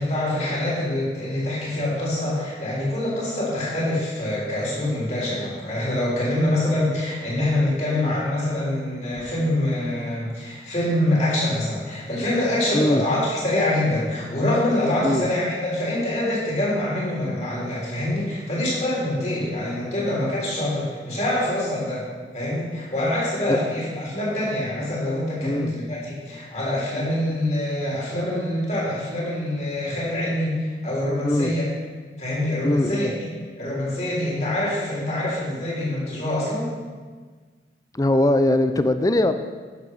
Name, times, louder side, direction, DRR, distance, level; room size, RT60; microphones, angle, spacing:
voice 1, 0.0-22.1 22.3-31.6 32.2-33.3 33.6-36.7, left 1 dB, 40° left, -6 dB, 3.8 m, -25 dB
voice 2, 32.6-33.1 37.9-39.3, left 1 dB, 20° left, 9 dB, 0.4 m, -20 dB
11.0 x 7.0 x 6.0 m, 1.5 s
head